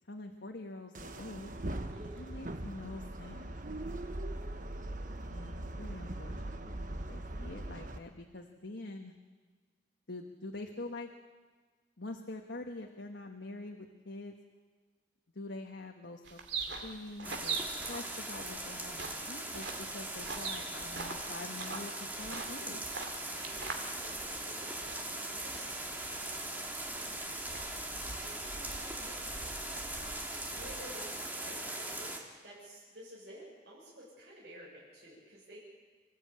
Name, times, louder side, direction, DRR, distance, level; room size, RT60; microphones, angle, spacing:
voice 1, 0.0-1.5 2.2-3.5 5.3-9.1 10.1-11.1 12.0-14.3 15.3-22.9, left 2 dB, 80° left, 2 dB, 1.5 m, -45 dB
sound 1, 0.9-8.0, right 1 dB, 45° right, 1.2 m, -41 dB
voice 2, 1.9-2.3 23.2-25.7 28.2-28.7 29.0-29.2 30.5-32.1 32.4-35.6, equal, 65° right, -8 dB, 7.4 m, -51 dB
sound 2, 16.2-31.0, right 4 dB, 85° right, 2.6 m, -44 dB
sound 3, 17.2-32.2, right 1 dB, 10° right, 2.3 m, -40 dB
26.5 x 14.5 x 8.7 m, 1.5 s
head